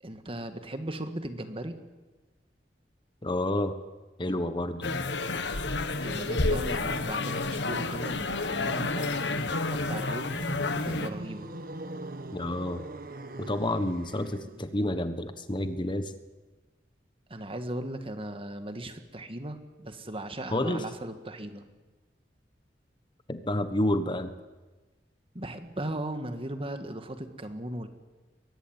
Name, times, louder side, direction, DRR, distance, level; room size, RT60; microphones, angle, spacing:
voice 1, 0.0-1.8 5.9-10.5 10.8-11.5 17.3-21.6 25.3-27.9, right 1 dB, 30° right, 8 dB, 1.9 m, -37 dB
voice 2, 3.2-3.7 4.2-5.0 12.3-12.8 13.4-16.1 20.5-20.8 23.3-24.3, left 1 dB, 30° left, 10 dB, 1.3 m, -29 dB
sound 1, 4.8-11.1, left 3 dB, 85° left, 1.5 m, -30 dB
sound 2, 10.1-14.8, right 1 dB, 55° right, 1.5 m, -41 dB
23.0 x 19.5 x 9.1 m, 1.2 s
head